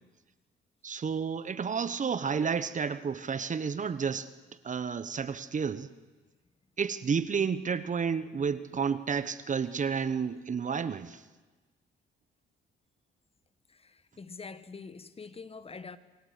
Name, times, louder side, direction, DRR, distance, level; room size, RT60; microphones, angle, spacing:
voice 1, 0.8-4.3 4.6-5.9 6.8-11.2, right 6 dB, 40° right, 1.2 m, -31 dB
voice 2, 13.7-16.0, left 4 dB, 30° left, 1.4 m, -45 dB
28.0 x 22.5 x 8.4 m
cardioid pair, 90°, 20 cm